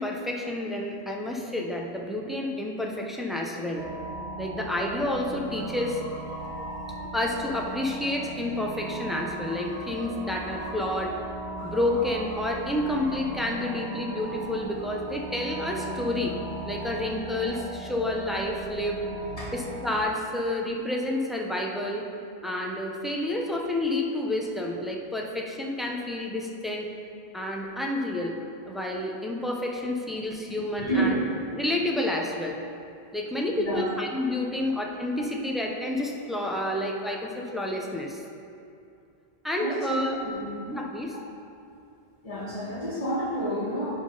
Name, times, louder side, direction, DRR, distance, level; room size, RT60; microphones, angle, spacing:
voice 1, 0.0-3.9 4.4-6.0 7.1-11.2 11.6-16.4 16.6-19.0 19.5-22.0 22.4-26.9 27.3-28.3 28.6-31.2 31.5-32.6 33.1-38.2 39.4-40.2 40.7-41.2, left 1 dB, ahead, -1 dB, 0.5 m, -29 dB
sound 1, 3.8-20.0, right 2 dB, 85° right, 1.0 m, -38 dB
sound 2, 5.5-11.2 11.6-13.9 14.2-17.1, right 1 dB, 80° left, 2.2 m, -46 dB
voice 2, 30.8-31.2 33.5-33.9 34.5-34.6 39.6-40.6 42.2-44.0, right 1 dB, 35° left, -5 dB, 1.6 m, -30 dB
10.0 x 3.7 x 5.3 m, 2.5 s
omnidirectional pair, 1.1 m